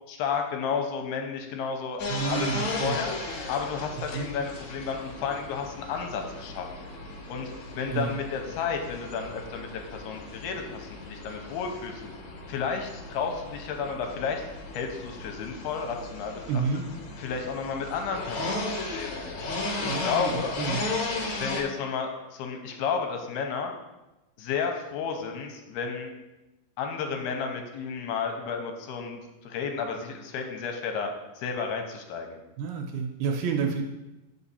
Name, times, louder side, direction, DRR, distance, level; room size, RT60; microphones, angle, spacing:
voice 1, 0.1-3.1 3.5-6.9 7.3-12.1 12.5-14.4 14.7-16.4 17.2-19.3 19.8-20.6 21.4-23.7 24.4-26.1 26.8-31.1 31.4-32.4, left 6 dB, 85° left, 3 dB, 2.5 m, -32 dB
sound 1, 2.0-21.6, left 2 dB, 65° left, 1.8 m, -36 dB
voice 2, 2.1-3.0 4.1-4.3 7.9-8.2 16.5-16.8 19.9-20.8 32.6-33.8, right 5 dB, 80° right, 3 dB, 2.2 m, -29 dB
6.1 x 5.7 x 4.1 m, 1.0 s
omnidirectional pair, 4.6 m